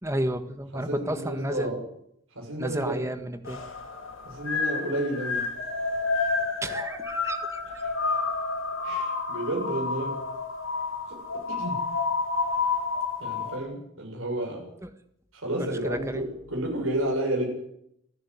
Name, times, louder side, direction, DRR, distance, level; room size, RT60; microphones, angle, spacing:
voice 1, 0.0-1.7 2.6-3.6 6.6-7.6 14.8-14.9 15.6-16.3, right 1 dB, 15° right, 9 dB, 1.6 m, -31 dB
voice 2, 0.7-1.8 2.4-3.0 4.3-5.4 8.8-10.2 11.1-11.2 11.6-11.8 13.2-14.6 15.3-17.5, right 1 dB, 80° right, 0 dB, 7.2 m, -31 dB
sound 1, 3.4-13.6, left 4 dB, 85° left, 7.6 m, -30 dB
29.0 x 10.5 x 9.8 m, 0.75 s
head